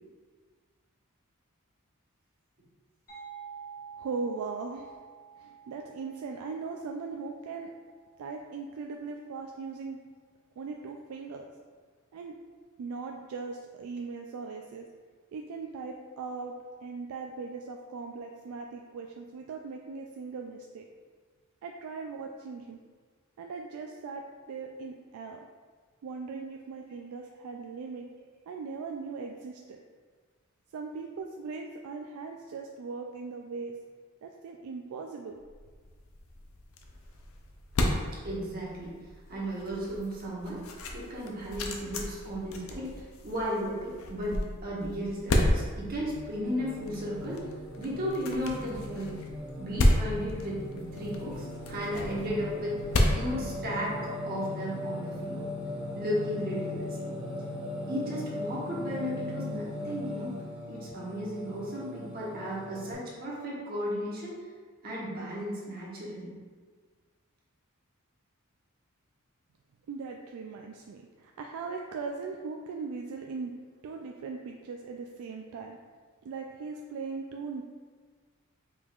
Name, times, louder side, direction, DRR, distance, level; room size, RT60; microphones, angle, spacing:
sound 1, 3.1-8.5, right 7 dB, 40° left, 1.3 m, -49 dB
voice 1, 4.0-5.0 5.4-7.7 8.2-10.0 10.6-11.5 12.1-12.3 12.8-14.9 15.3-16.6 16.8-20.8 21.6-22.8 23.4-24.2 24.5-25.5 26.0-28.1 28.5-29.8 30.7-33.8 34.2-35.4 69.9-73.5 73.8-75.8 76.2-77.6, right 4 dB, 80° right, 2 dB, 0.3 m, -39 dB
sound 2, 35.5-54.2, left 1 dB, 70° left, 0.5 m, -32 dB
voice 2, 38.2-38.9 39.3-47.4 47.8-49.2 49.6-52.8 53.1-54.0 54.2-55.4 55.9-57.1 57.9-60.4 60.7-64.3 64.8-66.4, equal, 45° right, -5 dB, 1.1 m, -35 dB
Singing, 45.8-62.9, left 1 dB, 5° right, 0.8 m, -39 dB
5.0 x 3.6 x 2.3 m, 1.5 s
head